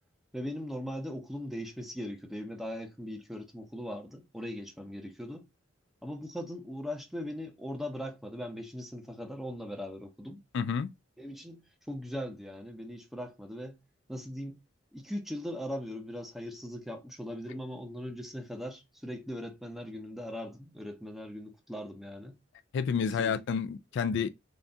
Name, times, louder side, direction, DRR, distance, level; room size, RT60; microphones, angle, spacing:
voice 1, 0.3-5.4 6.0-10.4 11.2-11.6 11.9-13.8 14.1-14.6 14.9-22.4 23.0-23.4, equal, ahead, 0.6 m, -39 dB
voice 2, 10.5-10.9 22.7-24.3, left 6 dB, 60° left, 0.3 m, -29 dB
4.0 x 2.3 x 3.4 m
head